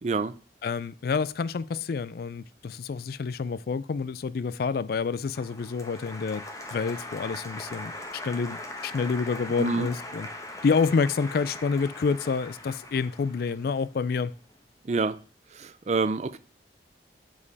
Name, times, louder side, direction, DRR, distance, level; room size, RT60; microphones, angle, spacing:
voice 1, 0.0-0.4 9.6-9.9 14.8-15.2 15.5-16.4, right 4 dB, 40° right, 0.4 m, -27 dB
voice 2, 0.6-6.4 6.7-7.9 8.2-10.3 10.6-14.3, left 5 dB, 55° left, 0.4 m, -28 dB
Applause, 5.3-14.4, left 1 dB, 20° left, 1.0 m, -41 dB
7.4 x 5.1 x 4.0 m
head